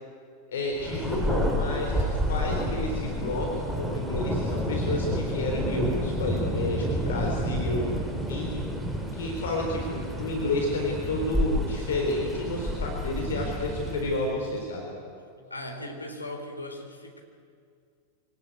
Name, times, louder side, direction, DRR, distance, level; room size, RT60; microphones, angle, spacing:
voice 1, 0.5-7.9 8.3-8.6 9.1-14.9, left 2 dB, 60° left, 1 dB, 3.9 m, -30 dB
Thunder, 0.8-14.4, equal, 5° right, 3.3 m, -30 dB
voice 2, 15.5-17.2, left 1 dB, 85° left, 3 dB, 3.9 m, -38 dB
25.0 x 18.0 x 9.1 m, 2.3 s
figure-of-eight pair, 90°, 0 cm